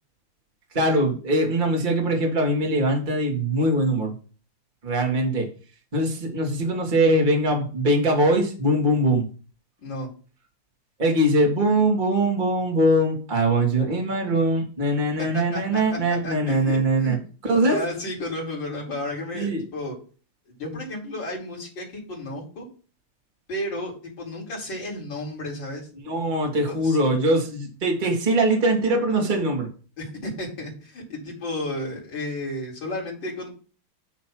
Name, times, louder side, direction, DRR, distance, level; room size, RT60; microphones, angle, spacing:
voice 1, 0.7-4.1 4.8-5.5 5.9-9.2 11.0-17.2 17.4-17.8 19.3-19.6 26.1-29.7, right 1 dB, 25° right, 0 dB, 1.7 m, -22 dB
voice 2, 15.2-15.8 16.1-17.2 17.7-20.0 20.6-22.7 23.5-25.9 26.7-27.0 30.0-33.5, left 1 dB, 55° left, -3 dB, 3.4 m, -32 dB
9.0 x 3.2 x 5.9 m, 0.38 s
omnidirectional pair, 2.4 m